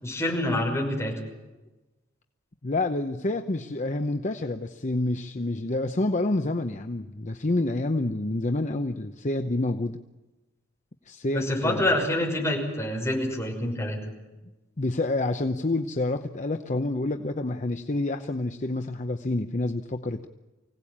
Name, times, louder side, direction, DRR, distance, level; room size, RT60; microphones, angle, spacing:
voice 1, 0.0-1.1 11.3-14.0, left 1 dB, 15° left, -1 dB, 6.0 m, -26 dB
voice 2, 2.6-10.0 11.1-11.9 14.8-20.3, left 2 dB, 35° left, 7 dB, 0.8 m, -28 dB
24.5 x 17.5 x 8.7 m, 1.1 s
head